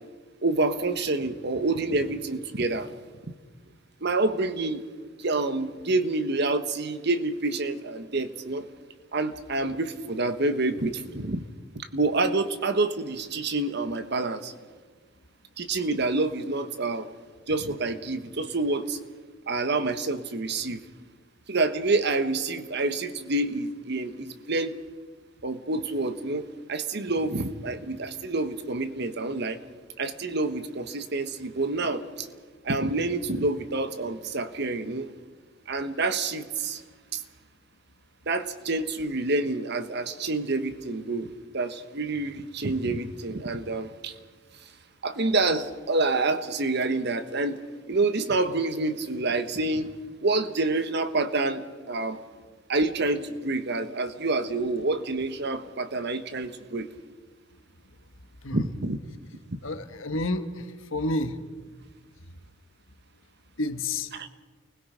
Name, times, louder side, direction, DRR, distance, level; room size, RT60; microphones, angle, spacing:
voice 1, 0.4-2.9 4.0-4.8 5.2-8.7 9.1-11.4 11.7-14.5 15.6-17.1 17.5-19.0 19.5-20.8 21.5-24.8 25.4-29.6 30.0-32.3 32.6-35.1 35.7-36.8 37.1-37.2 38.3-44.1 45.0-47.6 47.9-49.9 50.2-52.2 52.7-56.9 58.5-59.0 59.5-59.6 64.1-64.3, right 2 dB, 55° right, 1.3 m, -27 dB
voice 2, 59.6-60.7 60.9-61.4 63.6-64.1, left 2 dB, 85° left, 1.5 m, -29 dB
29.5 x 20.5 x 5.2 m
head